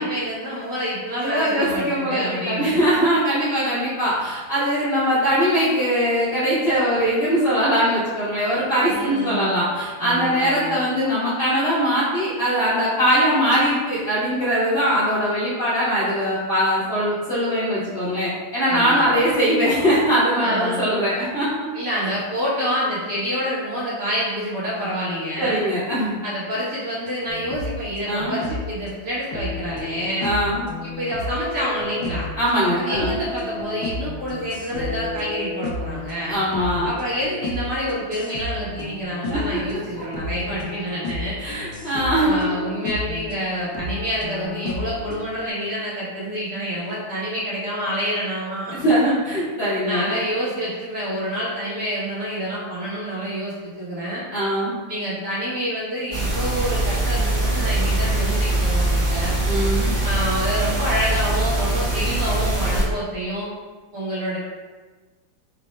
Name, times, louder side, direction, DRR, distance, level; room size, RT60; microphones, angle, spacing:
voice 1, 0.0-2.8 8.9-9.6 10.0-10.8 18.7-19.2 20.4-20.9 21.7-25.6 26.2-30.3 30.8-32.3 32.8-36.3 36.8-41.4 42.2-48.7 49.8-54.2 54.9-59.3 60.0-63.5 63.9-64.4, equal, 50° right, -9 dB, 1.4 m, -27 dB
voice 2, 1.2-2.2 2.5-21.7 25.4-26.2 28.1-28.4 30.2-30.6 32.4-33.1 36.2-36.9 39.3-39.4 41.4-42.4 48.7-50.1 54.3-54.8 59.5-59.9, equal, 50° left, -10 dB, 0.8 m, -21 dB
sound 1, 27.1-28.8 29.3-32.6 32.9-43.4 43.7-45.4, left 3 dB, 75° left, 1.2 m, -32 dB
sound 2, 56.1-62.8, right 2 dB, 30° right, 1.1 m, -22 dB
4.2 x 2.0 x 4.2 m, 1.3 s
omnidirectional pair, 2.0 m